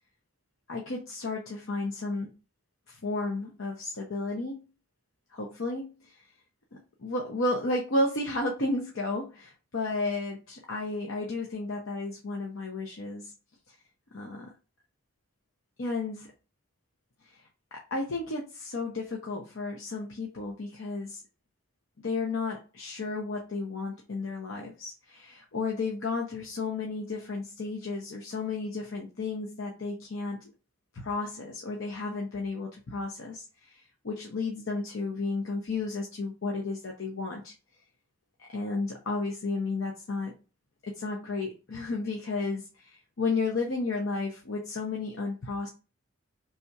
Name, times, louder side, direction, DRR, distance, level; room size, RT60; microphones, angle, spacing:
voice 1, 0.7-2.3 2.9-4.6 5.3-6.2 7.0-13.3 14.1-14.5 15.8-16.3 17.2-17.4 17.7-21.2 22.0-30.5 30.9-37.5 38.4-40.3 40.8-45.7, left 3 dB, 65° left, 0 dB, 0.7 m, -33 dB
3.4 x 2.7 x 4.6 m, 0.33 s
head